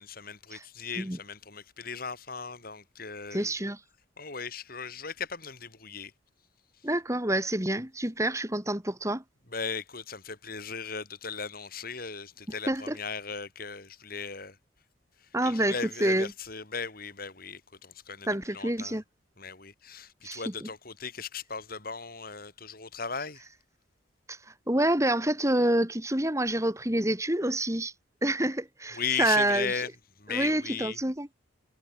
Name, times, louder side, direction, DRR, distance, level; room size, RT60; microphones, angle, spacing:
voice 1, 0.0-3.7 4.2-6.1 9.5-14.6 15.4-18.3 18.5-19.0 19.4-23.4 28.9-29.9 30.2-31.0, left 5 dB, 50° left, 4.2 m, -37 dB
voice 2, 3.3-3.8 6.8-9.2 12.7-13.0 15.3-15.7 16.0-16.3 18.3-19.0 20.2-20.7 24.3-27.9 28.2-29.7 30.3-31.3, right 1 dB, 15° right, 2.8 m, -27 dB
head